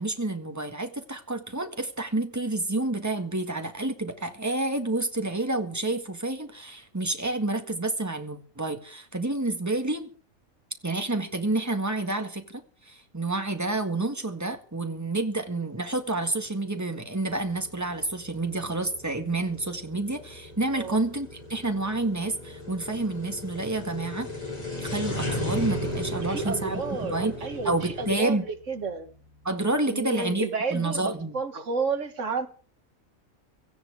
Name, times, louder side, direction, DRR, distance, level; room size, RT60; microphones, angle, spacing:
voice 1, 0.0-10.1 10.8-24.3 24.8-27.3 27.6-28.4 29.4-31.3, right 2 dB, 10° right, 1.7 m, -29 dB
sound 1, 15.7-28.2, left 1 dB, 30° left, 5.2 m, -35 dB
sound 2, 17.2-29.8, left 2 dB, 85° right, 6.2 m, -54 dB
voice 2, 20.7-21.0 26.1-29.1 29.9-32.5, right 4 dB, 60° right, 2.0 m, -31 dB
17.5 x 14.0 x 4.9 m
omnidirectional pair, 1.4 m